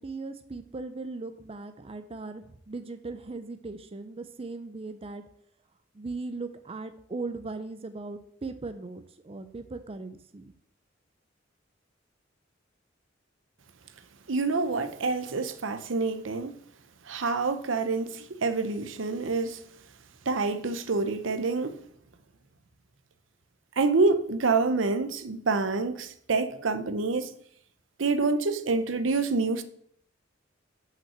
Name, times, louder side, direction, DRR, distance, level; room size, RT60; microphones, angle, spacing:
voice 1, 0.0-5.2 5.9-10.5, right 3 dB, 30° right, 0.5 m, -38 dB
voice 2, 14.3-16.6 17.1-19.6 20.3-21.8 23.8-27.3 28.0-29.6, right 3 dB, 75° right, 0.7 m, -27 dB
5.9 x 5.6 x 6.7 m
head